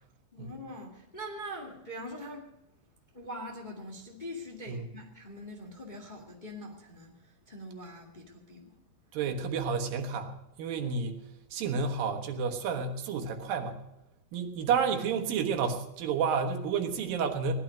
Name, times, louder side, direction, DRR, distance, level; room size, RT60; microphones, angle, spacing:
voice 1, 0.3-2.5 3.1-8.8, equal, 20° left, 0 dB, 1.4 m, -43 dB
voice 2, 9.1-11.2 11.5-13.8 14.3-17.5, right 6 dB, 80° right, 5 dB, 3.1 m, -30 dB
18.5 x 12.0 x 5.2 m, 0.87 s
omnidirectional pair, 4.0 m